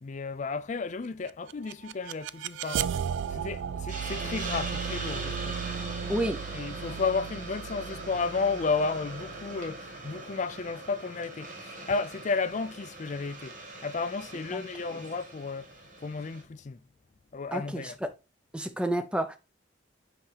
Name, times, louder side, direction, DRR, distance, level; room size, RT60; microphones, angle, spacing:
voice 1, 0.0-2.9 3.3-5.6 6.5-16.8 17.3-18.0, left 4 dB, 40° left, 0.4 m, -33 dB
sound 1, 1.3-10.2, right 8 dB, 75° right, 0.3 m, -36 dB
Hiss, 3.9-16.4, right 2 dB, 45° right, 1.5 m, -41 dB
voice 2, 6.1-6.4 14.5-14.7 17.5-17.9 18.5-19.4, right 1 dB, 5° right, 0.7 m, -30 dB
5.9 x 5.4 x 3.3 m
head